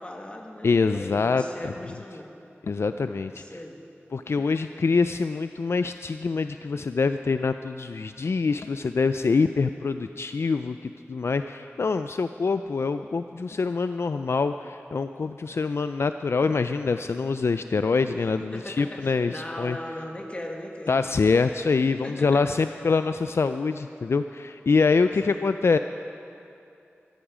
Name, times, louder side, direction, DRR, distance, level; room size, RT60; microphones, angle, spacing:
voice 1, 0.0-2.4 3.3-3.8 18.5-21.0 22.0-22.5 25.2-25.5, left 1 dB, 25° left, 1 dB, 1.7 m, -38 dB
voice 2, 0.6-1.7 2.7-3.4 4.1-19.8 20.9-25.8, left 4 dB, 65° left, 9 dB, 0.3 m, -25 dB
14.5 x 14.0 x 5.0 m, 2.7 s
wide cardioid pair, 75°, 5 cm